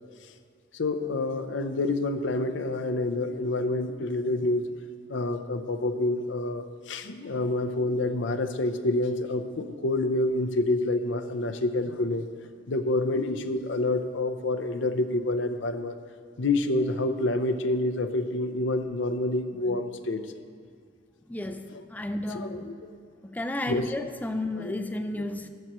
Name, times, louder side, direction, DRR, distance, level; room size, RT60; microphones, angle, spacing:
voice 1, 0.7-4.7 5.1-12.3 12.7-16.0 16.4-20.2 22.3-22.9 23.7-23.9 24.6-24.7 25.2-25.3, left 2 dB, 70° left, 9 dB, 0.6 m, -28 dB
voice 2, 21.3-22.7 23.2-25.5, left 1 dB, 10° left, 6 dB, 0.4 m, -33 dB
13.5 x 11.0 x 3.1 m, 2.3 s
head